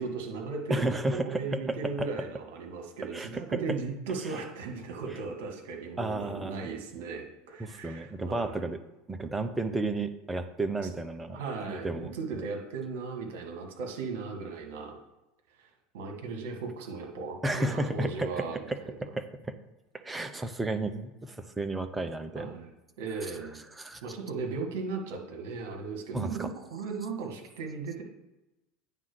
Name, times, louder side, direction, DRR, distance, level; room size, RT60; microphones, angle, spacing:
voice 1, 0.0-8.7 10.8-11.0 11.3-15.0 15.6-15.7 15.9-18.6 22.4-22.7 23.0-23.6 24.0-28.0, right 4 dB, 65° right, 2 dB, 1.8 m, -37 dB
voice 2, 0.7-1.6 2.0-2.1 3.1-3.4 4.2-4.4 6.0-6.7 7.6-8.8 9.1-11.4 11.7-12.1 17.4-18.8 19.1-19.2 19.9-22.6 23.8-24.0 26.1-26.5, right 2 dB, 15° right, 8 dB, 0.8 m, -32 dB
9.1 x 3.7 x 6.1 m, 0.98 s
hypercardioid pair, 75°, 0 cm